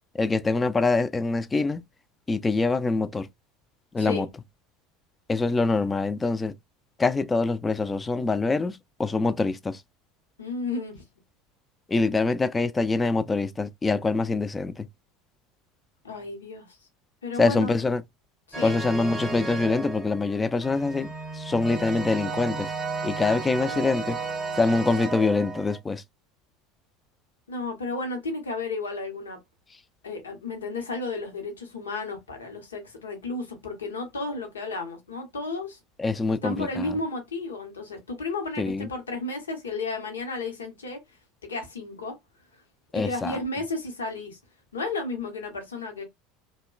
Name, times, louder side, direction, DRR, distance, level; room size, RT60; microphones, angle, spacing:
voice 1, 0.1-1.8 2.3-3.3 3.9-4.3 5.3-6.5 7.0-9.8 11.9-14.9 17.4-18.0 18.6-22.7 23.0-24.2 24.6-26.0 36.0-37.0 38.6-38.9 42.9-43.4, left 3 dB, 20° left, 0.3 m, -25 dB
voice 2, 10.4-11.0 16.0-16.8 17.2-17.9 18.5-18.8 27.5-29.4 30.0-35.8 36.3-41.0 41.5-42.2 42.9-44.4 44.7-46.0, left 3 dB, 80° left, 0.8 m, -33 dB
sound 1, 18.5-25.8, right 4 dB, 15° right, 0.8 m, -34 dB
2.9 x 2.1 x 2.3 m
figure-of-eight pair, 75°, 0 cm